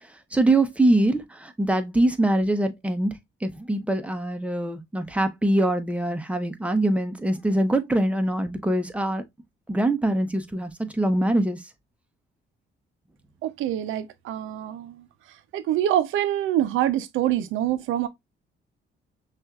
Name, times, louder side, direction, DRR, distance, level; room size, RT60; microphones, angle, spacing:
voice 1, 0.3-9.2 9.7-11.6, right 1 dB, 5° right, 0.7 m, -23 dB
voice 2, 13.4-15.0 15.5-18.1, right 12 dB, 85° right, 0.5 m, -25 dB
6.0 x 2.5 x 2.3 m
cardioid pair, 90°, 20 cm